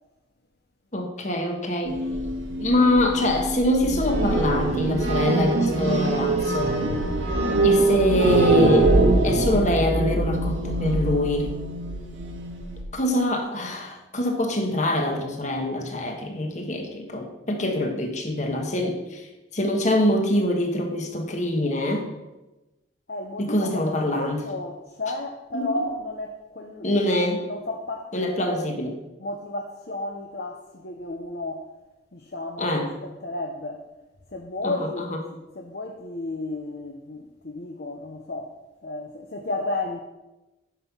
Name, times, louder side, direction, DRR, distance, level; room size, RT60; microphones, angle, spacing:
voice 1, 0.9-2.0 2.6-6.8 7.6-8.9 9.2-11.5 12.9-19.3 19.5-22.1 23.4-24.4 25.5-25.7 26.8-27.4 28.1-28.9 32.6-32.9 34.6-35.2, left 1 dB, 35° left, 3 dB, 1.4 m, -24 dB
sound 1, 1.9-12.8, right 2 dB, 85° right, 1.7 m, -23 dB
voice 2, 23.1-27.0 27.5-28.7 29.2-31.7 32.1-32.7 33.0-33.8 34.3-35.1 35.5-38.5 38.8-40.0, left 2 dB, 55° left, 2 dB, 0.8 m, -33 dB
9.4 x 5.7 x 6.1 m, 1.0 s
head